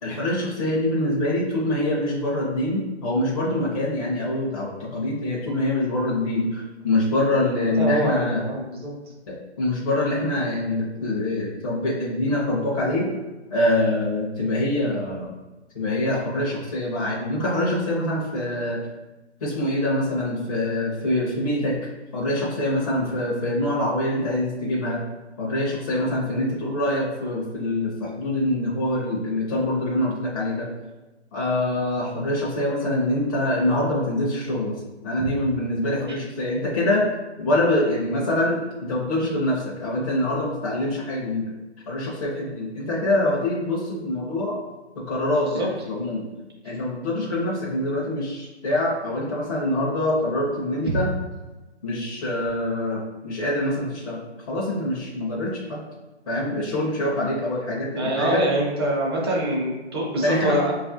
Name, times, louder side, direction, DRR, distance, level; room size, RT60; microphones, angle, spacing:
voice 1, 0.0-8.4 9.3-13.1 13.5-15.3 15.7-18.8 19.4-21.8 22.1-25.0 25.4-30.7 31.3-37.1 37.4-41.5 41.9-44.6 45.0-46.2 46.6-51.1 51.8-55.8 56.3-58.4 60.2-60.6, left 1 dB, 30° left, -6 dB, 0.6 m, -25 dB
voice 2, 7.8-8.9 35.2-35.3 45.4-45.7 50.8-51.0 57.8-60.7, right 1 dB, 25° right, -4 dB, 0.6 m, -25 dB
5.0 x 2.4 x 2.6 m, 1.1 s
hypercardioid pair, 160°, 34 cm